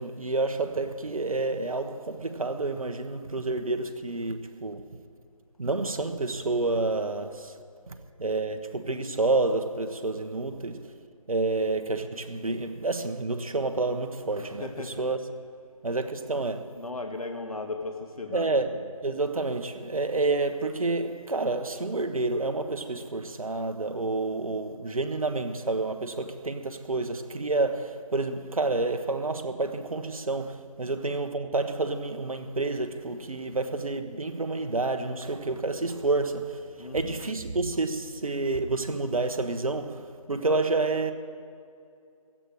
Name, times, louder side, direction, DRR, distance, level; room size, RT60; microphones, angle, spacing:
voice 1, 0.0-5.0 5.6-7.6 7.9-10.9 11.3-15.3 15.8-16.8 18.3-18.8 19.0-41.1, right 3 dB, 70° right, 1.2 m, -29 dB
voice 2, 14.4-15.1 16.8-18.6 36.7-37.3, left 3 dB, 75° left, 1.6 m, -37 dB
16.5 x 14.0 x 4.9 m
figure-of-eight pair, 170°, 19 cm